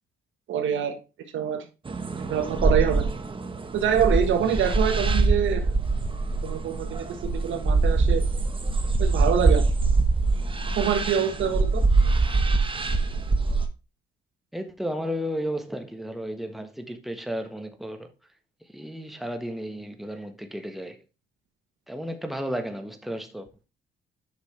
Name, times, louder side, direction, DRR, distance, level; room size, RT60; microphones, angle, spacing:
voice 1, 0.5-1.0 1.3-1.6 2.2-3.1 3.7-5.7 6.4-7.0 7.3-8.2 9.0-9.6 10.8-11.8, right 8 dB, 75° right, 1.4 m, -25 dB
sound 1, 1.9-13.7, right 3 dB, 25° right, 1.2 m, -23 dB
voice 2, 12.0-12.3 14.5-18.1 18.7-21.0 21.9-23.5, equal, ahead, 1.4 m, -33 dB
8.5 x 6.0 x 3.3 m
cardioid pair, 90°, 20 cm